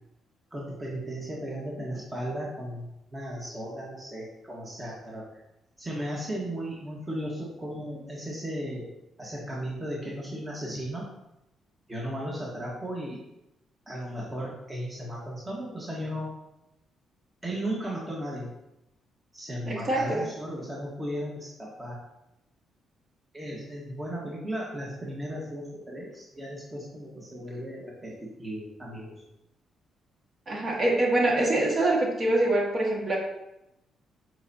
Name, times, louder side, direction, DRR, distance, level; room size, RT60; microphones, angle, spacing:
voice 1, 0.5-5.2 5.8-8.9 9.2-11.1 11.9-13.2 13.9-16.3 17.4-18.5 19.3-22.0 23.3-29.1, equal, 20° right, -4 dB, 1.4 m, -35 dB
voice 2, 19.7-20.2 30.5-33.2, right 1 dB, 45° right, -2 dB, 1.7 m, -24 dB
7.8 x 4.5 x 2.8 m, 0.89 s
cardioid pair, 90°, 0 cm